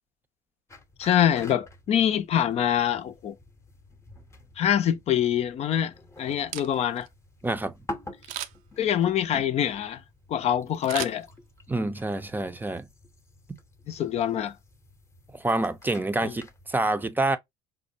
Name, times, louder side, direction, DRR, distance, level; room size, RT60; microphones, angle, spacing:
sound 1, 0.7-16.8, left 1 dB, 20° left, 0.8 m, -47 dB
voice 1, 1.0-3.3 4.6-7.1 8.8-10.0 10.3-11.3 13.9-14.5 16.2-16.3, left 10 dB, 50° left, 0.6 m, -25 dB
Camera, 6.3-7.1 8.2-8.8 10.8-11.8 12.2-12.3, right 13 dB, 70° right, 0.6 m, -37 dB
voice 2, 7.4-7.8 11.7-12.9 13.5-13.6 15.3-17.4, right 2 dB, 15° right, 0.6 m, -27 dB
5.1 x 2.1 x 2.7 m
supercardioid pair, 75°, 14 cm